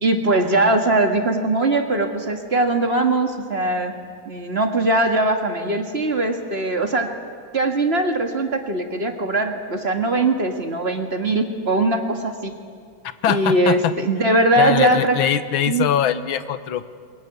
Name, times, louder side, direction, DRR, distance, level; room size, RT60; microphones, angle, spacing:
voice 1, 0.0-3.9 4.3-7.1 7.5-12.5 13.3-15.2 15.7-15.9, right 2 dB, 35° right, 5 dB, 1.8 m, -21 dB
voice 2, 13.2-13.9 14.6-16.9, left 10 dB, 90° left, 13 dB, 1.8 m, -22 dB
22.5 x 22.0 x 9.5 m, 2.1 s
omnidirectional pair, 2.1 m